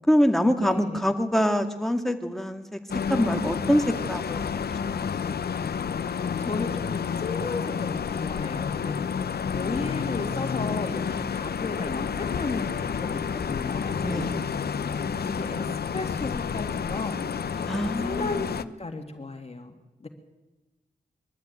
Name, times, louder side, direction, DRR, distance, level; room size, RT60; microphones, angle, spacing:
voice 1, 0.1-2.8 3.1-5.2 14.0-14.5 17.7-18.4, equal, ahead, 5 dB, 2.1 m, -25 dB
voice 2, 0.6-1.1 6.0-14.3 14.7-17.2 17.6-17.7 18.0-18.5 18.8-19.8 20.0-20.1, left 3 dB, 40° left, 5 dB, 2.1 m, -35 dB
sound 1, 2.9-18.6, left 6 dB, 75° left, 0.8 m, -30 dB
23.0 x 13.0 x 9.2 m, 1.1 s
wide cardioid pair, 90°, 16 cm